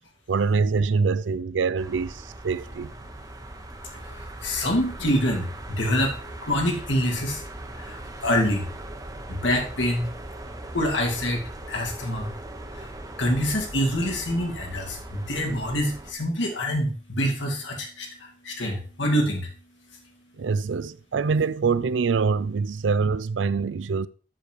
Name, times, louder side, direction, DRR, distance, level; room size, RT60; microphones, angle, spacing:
voice 1, 0.3-2.9 20.4-24.1, right 5 dB, 80° right, 0.5 m, -24 dB
sound 1, 1.8-16.1, right 1 dB, 20° right, 0.8 m, -39 dB
voice 2, 3.9-7.4 7.7-8.7 9.3-10.1 10.7-12.3 12.8-12.9 13.2-19.5, equal, 80° left, 2.3 m, -26 dB
7.6 x 6.7 x 4.5 m
head